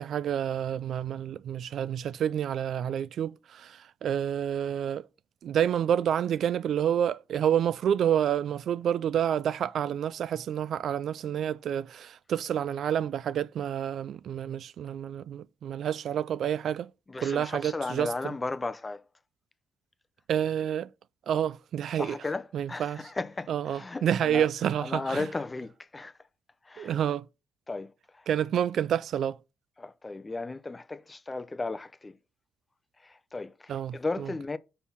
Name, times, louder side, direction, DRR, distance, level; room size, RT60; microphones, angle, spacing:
voice 1, 0.0-5.1 5.4-16.9 17.2-18.3 20.3-20.9 21.3-22.2 22.5-23.0 23.5-25.3 26.8-27.3 28.3-29.4 33.7-34.3, right 9 dB, 65° right, 0.3 m, -29 dB
voice 2, 17.1-19.1 22.0-24.5 24.8-26.2 26.6-27.0 27.7-28.3 29.8-32.2 33.0-34.6, left 3 dB, 20° left, 0.6 m, -35 dB
6.2 x 5.5 x 5.6 m
cardioid pair, 90°, 0 cm